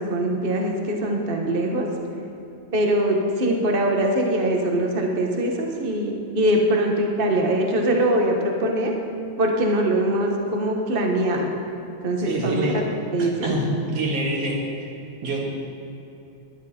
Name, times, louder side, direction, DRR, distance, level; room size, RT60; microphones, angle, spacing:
voice 1, 0.0-1.9 2.7-8.9 9.4-11.5 12.0-12.6 13.1-13.5, right 1 dB, 40° right, 1 dB, 0.7 m, -22 dB
voice 2, 12.2-12.8 13.2-14.6 15.2-15.4, right 2 dB, 55° right, -2 dB, 3.1 m, -26 dB
21.0 x 10.5 x 4.4 m, 2.8 s
omnidirectional pair, 3.4 m